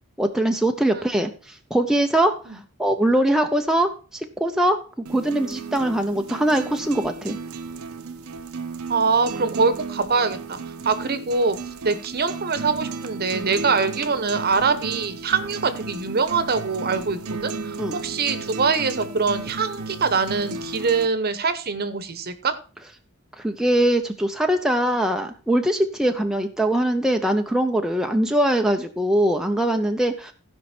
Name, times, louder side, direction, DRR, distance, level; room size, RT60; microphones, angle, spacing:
voice 1, 0.2-4.8 5.1-7.4 17.8-17.9 23.4-30.3, right 1 dB, ahead, 3 dB, 0.6 m, -22 dB
sound 1, 5.1-21.1, right 4 dB, 80° right, 0.8 m, -34 dB
voice 2, 8.9-10.6 10.8-11.6 11.8-22.5, right 4 dB, 45° right, 12 dB, 1.0 m, -23 dB
15.5 x 5.3 x 4.3 m, 0.36 s
head